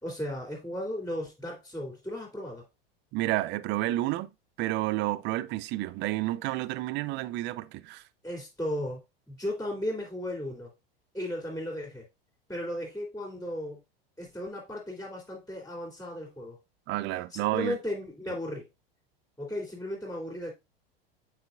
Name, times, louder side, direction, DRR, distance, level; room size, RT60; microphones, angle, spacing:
voice 1, 0.0-2.6 8.2-10.7 11.1-12.0 12.5-13.8 14.2-16.6 17.3-18.6 19.4-20.5, left 1 dB, 10° left, 2.9 m, -35 dB
voice 2, 3.1-4.3 4.6-8.0 16.9-17.8, right 17 dB, 35° right, 0.5 m, -30 dB
8.0 x 4.8 x 2.5 m
figure-of-eight pair, 85°, 30 cm